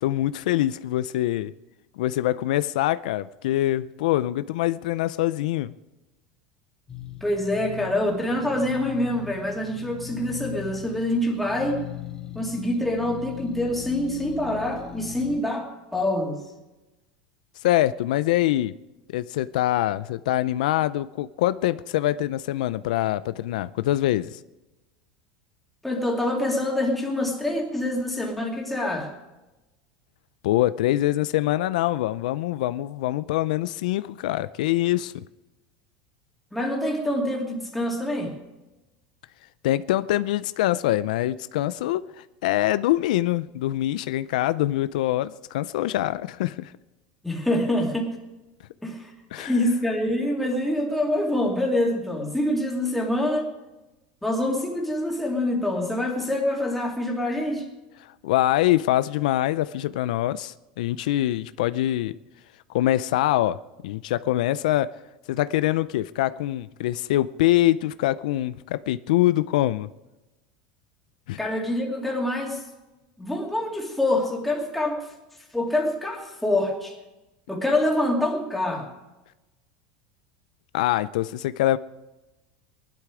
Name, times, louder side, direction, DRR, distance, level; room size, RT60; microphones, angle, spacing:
voice 1, 0.0-1.5 2.0-5.7 17.6-18.7 19.1-24.4 30.4-35.2 39.6-42.0 42.4-46.7 49.3-49.5 58.0-62.1 62.7-63.6 63.8-64.9 65.3-69.9 71.3-71.4 80.7-81.8, left 14 dB, 80° left, 0.5 m, -24 dB
sound 1, 6.9-15.4, left 12 dB, 20° left, 2.3 m, -39 dB
voice 2, 7.2-11.8 12.3-16.4 25.8-29.1 36.5-38.3 47.2-48.1 48.8-49.1 49.4-53.5 54.2-57.6 71.4-72.6 73.2-75.1 75.5-77.0 77.5-78.9, left 1 dB, 5° left, 2.5 m, -25 dB
19.5 x 12.0 x 4.9 m
supercardioid pair, 160°, 4 cm